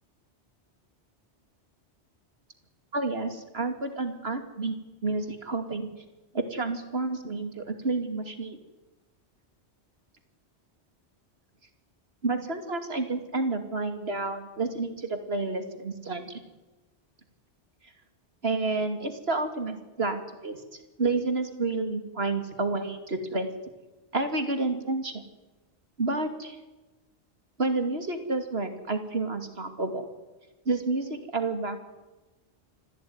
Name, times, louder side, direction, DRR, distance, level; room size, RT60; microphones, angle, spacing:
voice 1, 2.9-4.8 5.0-5.9 6.3-8.6 12.2-16.4 18.4-20.6 21.0-23.5 24.1-25.1 26.0-26.6 27.6-30.0 30.7-31.8, right 3 dB, 65° right, 7 dB, 2.9 m, -30 dB
25.0 x 16.5 x 9.6 m, 1.1 s
omnidirectional pair, 1.1 m